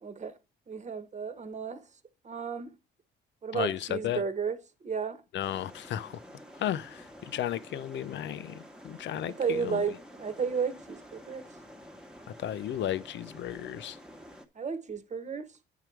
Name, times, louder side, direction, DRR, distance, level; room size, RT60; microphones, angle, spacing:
voice 1, 0.0-0.3 0.7-1.8 2.2-2.7 3.4-5.2 9.3-11.5 14.5-15.6, right 6 dB, 35° right, 1.1 m, -33 dB
voice 2, 3.5-4.2 5.3-6.2 6.6-9.8 12.4-14.0, left 11 dB, 65° left, 0.6 m, -34 dB
sound 1, 5.4-14.5, equal, 5° right, 1.2 m, -50 dB
9.3 x 4.8 x 4.6 m
cardioid pair, 90°, 20 cm